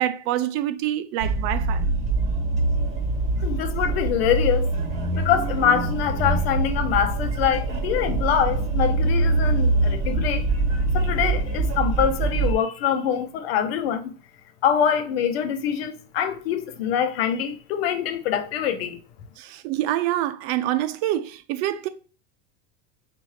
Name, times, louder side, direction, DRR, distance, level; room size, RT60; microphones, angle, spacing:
voice 1, 0.0-1.8 19.4-21.9, right 13 dB, 65° right, 0.6 m, -26 dB
sound 1, 1.2-12.5, right 3 dB, 25° right, 1.6 m, -24 dB
voice 2, 3.4-4.7 5.2-10.4 10.9-14.1 14.6-19.0, left 9 dB, 85° left, 0.8 m, -24 dB
5.5 x 2.6 x 3.1 m
supercardioid pair, 110°, 30 cm